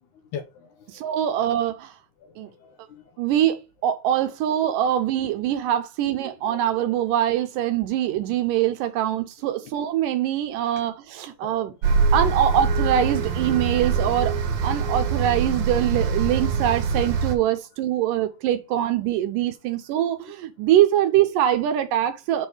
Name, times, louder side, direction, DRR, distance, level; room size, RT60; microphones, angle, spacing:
voice 1, 0.3-1.0 2.2-3.0 6.2-6.6 9.6-9.8 11.4-11.7 12.2-12.3 14.9-15.1, left 7 dB, 80° left, 1.9 m, -41 dB
voice 2, 0.9-2.0 2.4-2.5 3.2-11.7 12.1-14.4 14.6-22.5, right 11 dB, 80° right, 2.1 m, -23 dB
sound 1, 11.8-17.4, right 5 dB, 60° right, 2.2 m, -24 dB
7.0 x 4.6 x 4.8 m
omnidirectional pair, 4.2 m